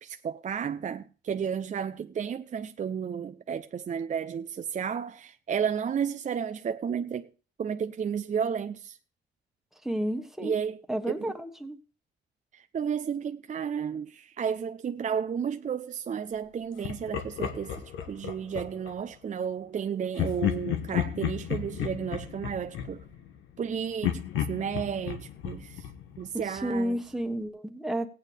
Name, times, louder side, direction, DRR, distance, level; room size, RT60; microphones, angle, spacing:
voice 1, 0.0-7.3 7.6-9.0 10.4-10.8 11.1-11.4 12.5-17.8 18.1-23.0 23.6-25.9 26.2-27.0, right 7 dB, 40° right, 0.6 m, -32 dB
voice 2, 9.8-10.5 10.9-11.8 26.5-28.1, right 1 dB, ahead, 1.4 m, -31 dB
Laughter, 16.8-19.0 20.1-23.6 24.0-26.8, left 10 dB, 90° left, 1.3 m, -33 dB
16.5 x 9.1 x 3.4 m
cardioid pair, 90°, 20 cm